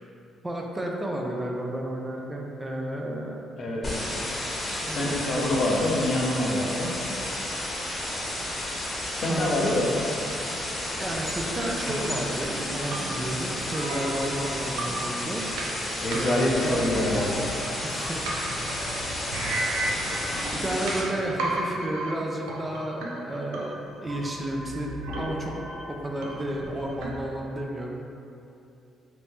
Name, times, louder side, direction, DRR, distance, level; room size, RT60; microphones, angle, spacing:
voice 1, 0.4-3.4 4.7-5.5 9.2-9.9 11.0-15.5 15.7-15.8 16.1-17.1 17.8-18.5 19.4-19.6 20.5-23.7 24.0-25.5 25.9-27.9, right 1 dB, 20° right, 0 dB, 0.5 m, -32 dB
voice 2, 3.6-4.0 4.9-6.9 9.2-9.9 16.0-17.3, left 1 dB, 60° left, -2 dB, 0.6 m, -26 dB
sound 1, 3.8-21.0, left 1 dB, 30° left, 0.9 m, -32 dB
sound 2, 11.1-27.3, right 1 dB, 85° right, 0.4 m, -35 dB
2.9 x 2.6 x 3.5 m, 2.7 s
supercardioid pair, 65°, 0 cm